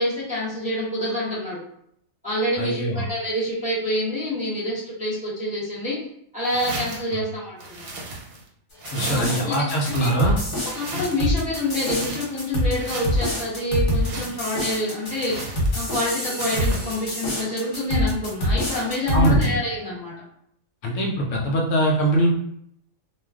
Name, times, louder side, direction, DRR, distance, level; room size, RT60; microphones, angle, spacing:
voice 1, 0.0-1.6 2.2-6.0 6.3-7.9 9.1-10.2 10.7-20.1, left 1 dB, 5° right, -8 dB, 0.8 m, -27 dB
voice 2, 2.6-3.0 8.9-10.4 19.1-19.5 20.8-22.3, right 1 dB, 70° left, -1 dB, 0.9 m, -22 dB
sound 1, 6.4-7.1 7.6-8.5 8.8-9.4 9.8-11.3 11.6-12.4 12.7-13.4 13.9-14.7 15.0-16.0 16.4-17.0, right 2 dB, 85° right, 1.2 m, -36 dB
sound 2, 8.8-19.4, equal, 40° left, 1.0 m, -25 dB
2.4 x 2.3 x 3.4 m, 0.71 s
omnidirectional pair, 1.5 m